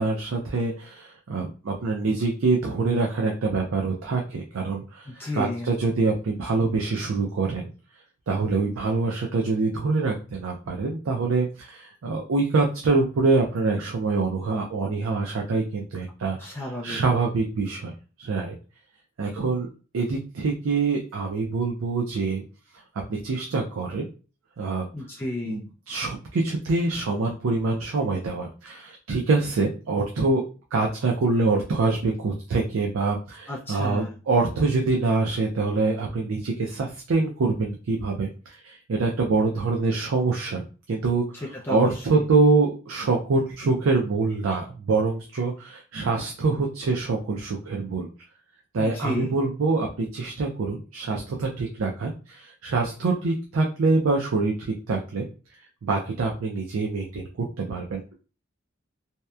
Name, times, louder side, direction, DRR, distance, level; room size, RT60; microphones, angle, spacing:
voice 1, 0.0-7.7 8.3-17.9 18.2-18.6 19.2-19.7 19.9-22.4 23.1-24.1 24.6-24.9 25.5-30.4 30.7-48.1 48.7-55.3 55.8-58.0, right 3 dB, 85° right, 1 dB, 0.4 m, -25 dB
voice 2, 5.1-5.7 16.4-17.0 24.9-25.6 33.5-34.1 41.6-41.9 48.8-49.3, left 1 dB, 10° left, -3 dB, 0.4 m, -32 dB
2.8 x 2.1 x 2.3 m, 0.35 s
head